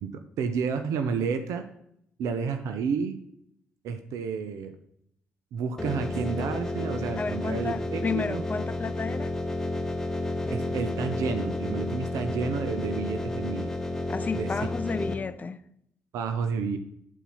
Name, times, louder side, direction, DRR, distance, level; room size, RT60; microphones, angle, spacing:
voice 1, 0.0-1.6 2.2-3.2 3.8-4.7 5.5-8.4 10.5-13.7 14.3-14.5 16.1-16.8, right 6 dB, 70° right, 0.7 m, -30 dB
sound 1, 5.8-15.1, left 2 dB, 10° left, 1.5 m, -31 dB
voice 2, 7.1-9.3 14.1-15.6, left 5 dB, 30° left, 0.5 m, -32 dB
9.2 x 4.2 x 5.4 m
hypercardioid pair, 50°, 5 cm